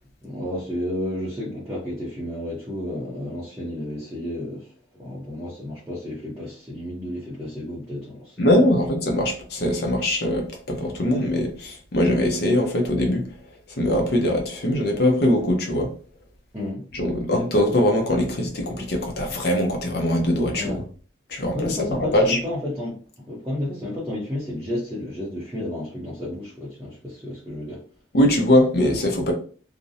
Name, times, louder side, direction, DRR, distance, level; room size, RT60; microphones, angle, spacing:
voice 1, 0.2-8.5 16.5-16.8 20.5-20.8 21.5-27.8, left 1 dB, 15° right, 0.6 m, -31 dB
voice 2, 8.4-13.3 13.7-15.9 16.9-20.8 21.3-22.4 28.1-29.3, left 1 dB, 50° left, 0.6 m, -22 dB
2.5 x 2.0 x 2.6 m
head